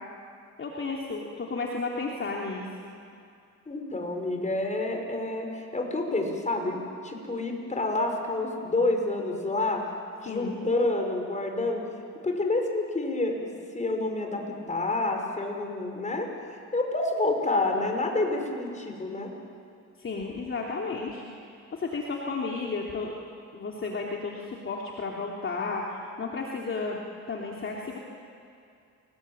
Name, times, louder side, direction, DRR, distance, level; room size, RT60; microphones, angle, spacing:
voice 1, 0.6-2.7 10.2-10.5 20.0-21.2 21.7-23.1 23.5-27.0 27.3-28.0, left 4 dB, 45° left, -2 dB, 3.2 m, -33 dB
voice 2, 3.7-9.8 10.2-11.8 12.2-19.3, left 2 dB, 25° left, 3 dB, 5.6 m, -28 dB
28.5 x 20.0 x 9.0 m, 2.4 s
cardioid pair, 90°, 30 cm